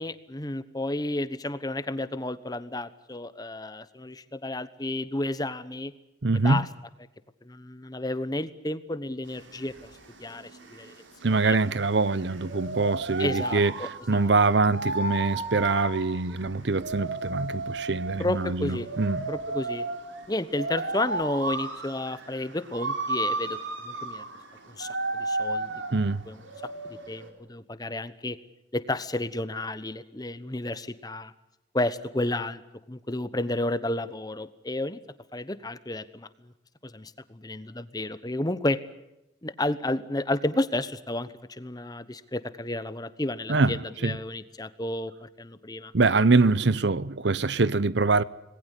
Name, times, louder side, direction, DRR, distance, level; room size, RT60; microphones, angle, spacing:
voice 1, 0.0-5.9 6.4-6.7 7.4-9.9 10.2-10.9 11.2-11.6 13.2-14.3 18.2-18.9 19.3-19.8 20.3-23.6 23.8-24.3 24.7-26.4 27.1-28.4 28.7-31.3 31.7-32.6 32.9-35.0 35.3-36.5 36.8-38.8 39.4-45.9, left 1 dB, 20° left, 1.1 m, -32 dB
voice 2, 6.2-6.7 11.2-13.7 14.1-19.2 25.9-26.2 43.5-44.2 45.9-48.2, right 3 dB, 65° right, 0.8 m, -24 dB
sound 1, 9.3-27.3, right 2 dB, 80° right, 3.9 m, -34 dB
26.5 x 20.0 x 8.3 m
head